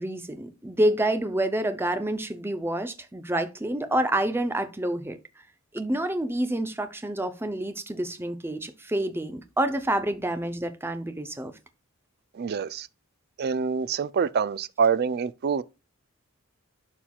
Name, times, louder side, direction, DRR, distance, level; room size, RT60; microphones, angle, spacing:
voice 1, 0.0-5.2 5.7-11.5, right 1 dB, 10° right, 0.6 m, -28 dB
voice 2, 12.4-12.9 13.4-15.6, right 6 dB, 45° right, 0.4 m, -26 dB
11.5 x 4.5 x 2.4 m
head